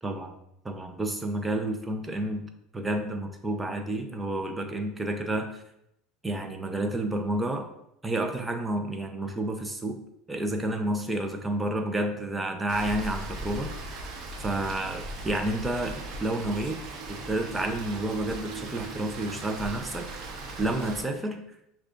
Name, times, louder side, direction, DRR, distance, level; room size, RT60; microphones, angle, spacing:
voice 1, 0.0-0.3 0.6-2.5 2.7-5.6 6.2-7.7 8.0-10.0 10.3-13.7 14.4-16.8 17.1-20.1 20.6-21.4, right 1 dB, 10° right, 6 dB, 0.5 m, -30 dB
Rain, 12.7-21.0, right 2 dB, 50° right, 0.9 m, -38 dB
6.3 x 2.3 x 2.4 m, 0.79 s
supercardioid pair, 105°, 0 cm